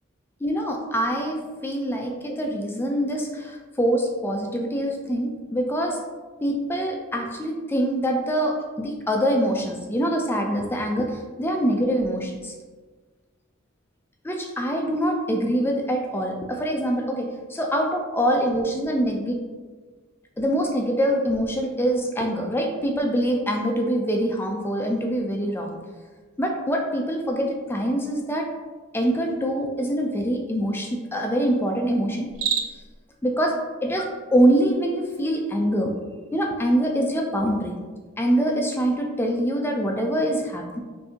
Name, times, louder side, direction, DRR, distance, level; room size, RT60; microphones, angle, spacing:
voice 1, 0.4-6.0 6.4-12.5 14.2-19.4 20.4-25.8 26.4-28.5 28.9-32.3 33.2-35.9 36.3-37.7 38.2-40.8, equal, 10° left, 2 dB, 0.4 m, -24 dB
Cricket, 32.2-33.0, right 7 dB, 70° right, 0.4 m, -27 dB
5.6 x 2.7 x 2.7 m, 1.4 s
head